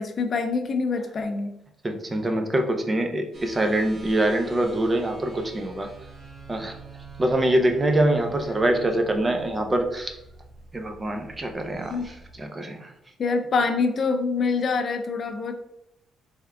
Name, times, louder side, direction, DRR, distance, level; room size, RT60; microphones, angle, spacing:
voice 1, 0.0-1.5 11.9-12.1 13.2-15.6, left 4 dB, 50° left, 7 dB, 0.5 m, -25 dB
voice 2, 1.8-5.9 6.5-6.7 7.2-10.1 10.7-12.9, right 1 dB, 25° right, 4 dB, 0.6 m, -24 dB
sound 1, 3.3-12.4, right 4 dB, 75° right, 1.4 m, -45 dB
3.5 x 3.4 x 3.4 m, 0.83 s
cardioid pair, 90°, 0 cm